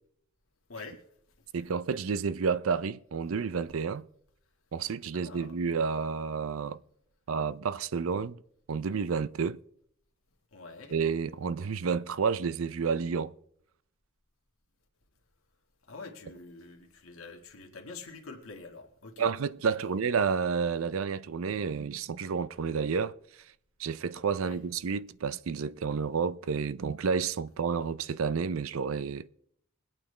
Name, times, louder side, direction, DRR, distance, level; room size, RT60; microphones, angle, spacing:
voice 1, 0.7-1.0 5.1-5.6 10.5-11.0 15.9-19.3 19.6-19.9 24.4-24.6, left 3 dB, 85° left, 1.8 m, -46 dB
voice 2, 1.5-4.0 4.7-6.8 7.3-8.4 8.7-9.6 10.9-13.3 19.2-23.2 23.8-29.3, right 5 dB, 80° right, 0.5 m, -30 dB
22.0 x 8.7 x 3.3 m
head